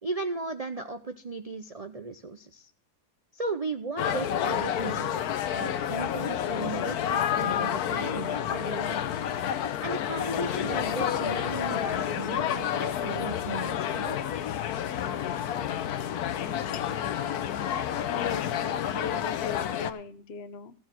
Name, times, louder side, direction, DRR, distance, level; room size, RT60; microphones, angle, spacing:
voice 1, 0.0-2.7 3.3-5.2 5.5-9.0 9.5-14.2, right 3 dB, 40° right, 9 dB, 0.5 m, -36 dB
sound 1, 4.0-19.9, left 10 dB, 75° left, 1.3 m, -29 dB
voice 2, 18.1-20.7, left 6 dB, 45° left, 11 dB, 1.0 m, -38 dB
14.5 x 7.1 x 5.9 m, 0.44 s
omnidirectional pair, 1.7 m